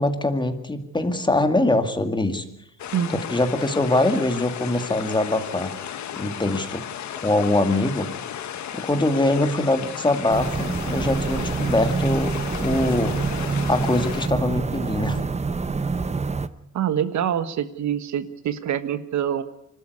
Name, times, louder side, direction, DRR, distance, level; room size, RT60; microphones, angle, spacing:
voice 1, 0.0-2.4 3.1-5.7 6.2-6.9 7.2-8.1 8.7-12.4 12.6-13.2 13.7-15.2, left 2 dB, 15° left, 8 dB, 2.2 m, -23 dB
sound 1, 2.8-14.3, left 9 dB, 70° left, 1.5 m, -34 dB
voice 2, 2.9-3.2 16.7-19.4, right 9 dB, 70° right, 12 dB, 1.5 m, -25 dB
sound 2, 10.3-16.5, right 4 dB, 20° right, 0.9 m, -26 dB
25.0 x 12.5 x 9.5 m, 0.79 s
cardioid pair, 90°, 30 cm